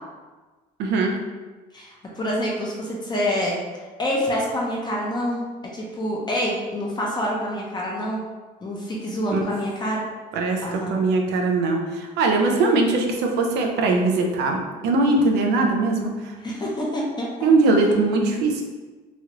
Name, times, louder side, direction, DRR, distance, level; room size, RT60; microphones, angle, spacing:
voice 1, 0.8-1.2 9.3-9.4 10.3-16.1 17.4-18.6, right 3 dB, 80° right, 2 dB, 0.5 m, -21 dB
voice 2, 1.7-3.6 4.0-5.4 5.7-8.2 8.6-10.0 10.6-11.0 16.4-17.5, equal, 25° left, -3 dB, 0.7 m, -27 dB
3.0 x 2.4 x 2.9 m, 1.3 s
cardioid pair, 110°, 17 cm